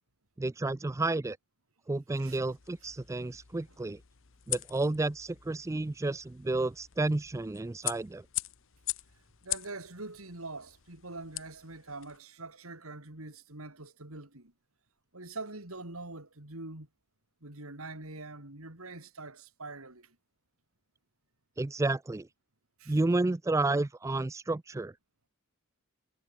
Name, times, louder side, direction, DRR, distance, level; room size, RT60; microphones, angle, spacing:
voice 1, 0.4-1.4 1.9-4.0 4.5-8.2 21.6-22.3 22.9-24.9, right 2 dB, 15° right, 0.3 m, -31 dB
sound 1, 2.3-12.2, left 17 dB, 65° left, 1.1 m, -42 dB
voice 2, 9.4-14.5 15.1-16.9 17.4-20.2 22.8-23.0, right 2 dB, 75° right, 4.6 m, -44 dB
head